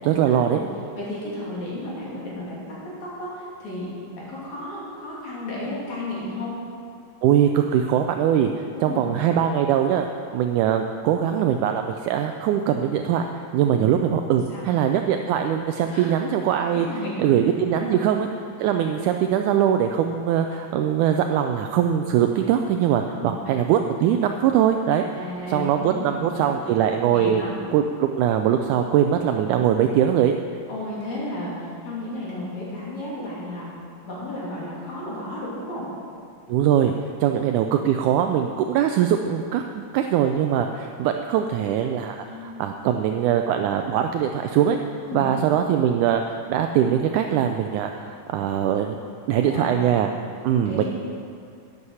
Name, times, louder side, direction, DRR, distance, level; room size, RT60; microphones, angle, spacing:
voice 1, 0.0-0.6 7.2-10.1 10.3-16.9 17.2-18.3 18.6-25.1 25.5-27.4 27.7-30.4 36.5-36.9 37.2-44.8 45.1-49.0 49.3-50.1 50.4-50.8, right 9 dB, 80° right, 5 dB, 1.8 m, -22 dB
voice 2, 1.0-6.5 8.7-9.1 13.7-13.8 14.3-14.7 15.9-16.2 16.7-17.3 17.7-18.1 23.0-23.4 25.1-26.6 27.1-27.6 30.7-33.7 34.0-35.8 42.2-42.8 45.0-45.3 49.4-49.8 50.7-50.8, left 1 dB, 55° left, -6 dB, 4.0 m, -33 dB
11.5 x 9.8 x 5.6 m, 2.4 s
omnidirectional pair, 3.9 m